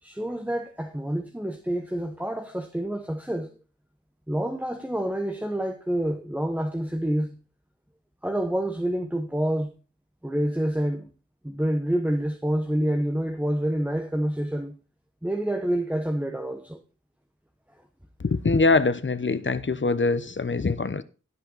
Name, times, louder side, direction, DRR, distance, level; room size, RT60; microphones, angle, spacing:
voice 1, 0.0-3.6 4.3-7.4 8.2-9.8 10.2-11.1 11.4-14.7 15.2-16.8, right 1 dB, 5° right, 1.0 m, -27 dB
voice 2, 18.2-21.0, left 3 dB, 40° left, 0.8 m, -23 dB
16.5 x 5.7 x 3.9 m
wide cardioid pair, 80°, 29 cm